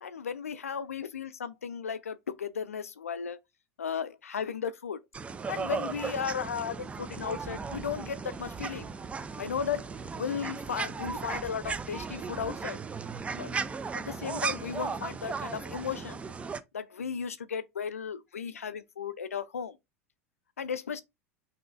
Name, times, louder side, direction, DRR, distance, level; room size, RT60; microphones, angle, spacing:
voice 1, 0.0-3.4 3.8-5.0 5.5-8.9 9.4-9.9 10.1-12.8 13.3-13.6 13.9-16.2 16.7-19.8 20.6-21.0, left 7 dB, 80° left, 0.4 m, -35 dB
sound 1, 5.1-16.6, right 5 dB, 15° right, 0.4 m, -36 dB
5.9 x 2.7 x 2.4 m
figure-of-eight pair, 80°, 8 cm